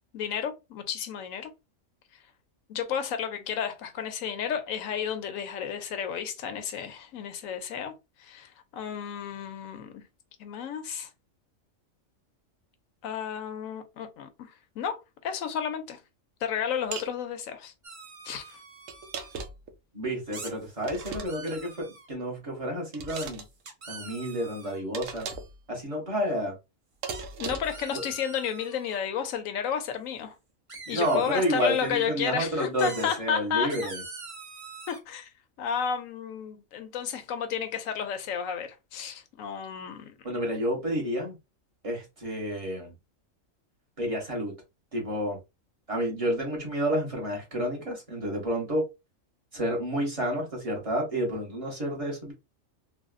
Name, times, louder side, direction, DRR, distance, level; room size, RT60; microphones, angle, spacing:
voice 1, 0.1-1.5 2.7-10.0 10.4-11.1 13.0-16.0 16.4-17.7 18.2-18.6 27.4-30.4 30.9-33.9 34.9-35.3 35.6-40.1, left 7 dB, 80° left, 1.0 m, -32 dB
sound 1, 16.9-17.1 18.9-19.7 20.8-21.6 22.9-23.5 24.9-25.6 27.0-27.8, right 5 dB, 75° right, 0.9 m, -38 dB
sound 2, 17.8-19.4 20.3-20.5 21.0-22.1 23.1-23.3 23.6-24.8 27.1-27.2 27.6-29.0 30.7-32.1 32.8-33.2 33.7-35.0, right 4 dB, 45° right, 0.4 m, -44 dB
voice 2, 19.9-23.4 23.9-25.3 25.7-26.5 27.9-28.0 30.9-34.0 40.2-41.4 41.8-42.9 44.0-44.5 44.9-45.4 45.9-48.9 49.5-52.3, equal, 25° right, 1.3 m, -30 dB
3.4 x 2.2 x 2.4 m
omnidirectional pair, 1.4 m